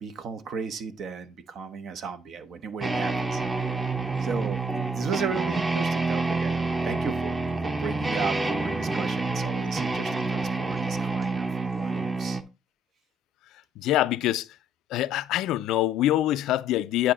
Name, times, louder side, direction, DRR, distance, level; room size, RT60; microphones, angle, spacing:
voice 1, 0.0-3.7 4.2-12.4, right 6 dB, 60° right, 0.9 m, -35 dB
sound 1, 2.8-12.4, right 3 dB, 20° right, 0.9 m, -28 dB
voice 2, 13.8-14.5 14.9-17.1, left 14 dB, 65° left, 0.3 m, -24 dB
9.2 x 4.4 x 3.9 m
hypercardioid pair, 50°, 0 cm